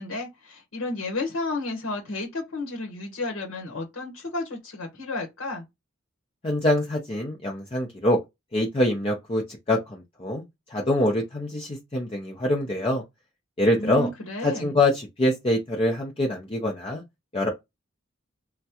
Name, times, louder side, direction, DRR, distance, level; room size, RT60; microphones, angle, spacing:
voice 1, 0.0-5.6 13.8-14.8, left 2 dB, 80° left, 1.0 m, -32 dB
voice 2, 6.4-8.2 8.5-9.4 9.7-10.4 10.7-13.0 13.6-14.1 14.4-17.0 17.3-17.5, left 1 dB, 30° left, 0.6 m, -24 dB
3.4 x 2.2 x 2.8 m
head